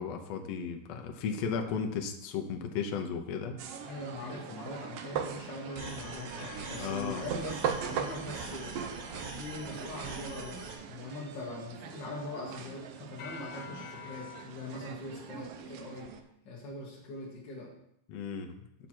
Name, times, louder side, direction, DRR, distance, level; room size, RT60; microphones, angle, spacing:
voice 1, 0.0-3.6 6.8-7.2 18.1-18.5, left 6 dB, 70° left, 4 dB, 1.7 m, -35 dB
sound 1, 3.6-16.2, right 7 dB, 90° right, 1.3 m, -40 dB
voice 2, 3.8-8.8 9.3-16.1 16.4-17.7, left 2 dB, 50° left, -4 dB, 1.5 m, -42 dB
sound 2, 5.7-8.6 13.2-14.4, left 8 dB, 90° left, 1.4 m, -49 dB
sound 3, 5.8-10.8, right 3 dB, 70° right, 1.0 m, -42 dB
7.3 x 6.6 x 4.4 m, 0.79 s
omnidirectional pair, 3.5 m